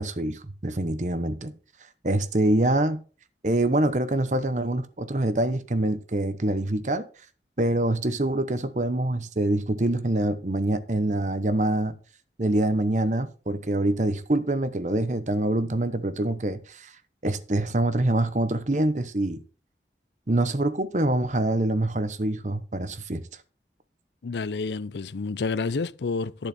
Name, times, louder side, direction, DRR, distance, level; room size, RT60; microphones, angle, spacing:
voice 1, 0.0-1.5 2.0-3.0 3.4-7.0 7.6-11.9 12.4-16.9 17.2-19.4 20.3-23.2, right 1 dB, 45° right, 0.9 m, -25 dB
voice 2, 24.2-26.5, left 4 dB, 80° left, 0.5 m, -29 dB
11.5 x 6.8 x 4.2 m
head